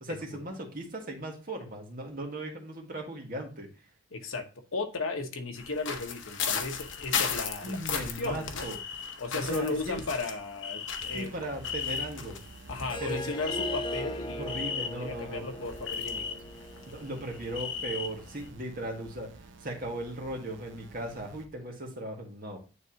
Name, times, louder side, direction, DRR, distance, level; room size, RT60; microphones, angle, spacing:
voice 1, 0.0-3.7 7.6-8.8 9.3-10.0 11.1-12.4 13.0-13.4 14.3-15.4 16.9-19.3 19.6-22.6, right 1 dB, 45° right, 1 dB, 1.6 m, -37 dB
voice 2, 4.1-8.6 9.2-11.3 12.7-14.5 15.0-16.4, left 3 dB, 85° left, 5 dB, 1.1 m, -35 dB
sound 1, 5.6-15.2 15.5-18.5, left 6 dB, 65° left, 0.9 m, -36 dB
sound 2, 11.0-21.5, right 2 dB, 60° right, 0.8 m, -50 dB
Harp, 12.8-18.0, equal, 25° left, 0.4 m, -40 dB
9.8 x 3.4 x 2.9 m, 0.34 s
head